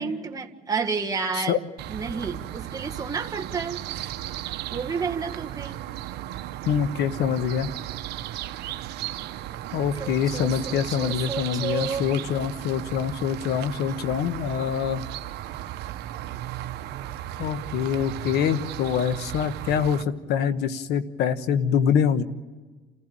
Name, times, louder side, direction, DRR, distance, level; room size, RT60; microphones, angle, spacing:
voice 1, 0.0-1.6 1.9-3.8 4.7-5.9 10.0-12.1, right 5 dB, 20° right, 2 dB, 1.8 m, -31 dB
sound 1, 1.8-20.0, right 13 dB, 80° right, 1.0 m, -35 dB
voice 2, 6.7-7.7 9.7-15.0 17.4-22.2, left 8 dB, 80° left, 12 dB, 1.2 m, -25 dB
28.5 x 15.5 x 9.0 m, 1.4 s
cardioid pair, 110°, 17 cm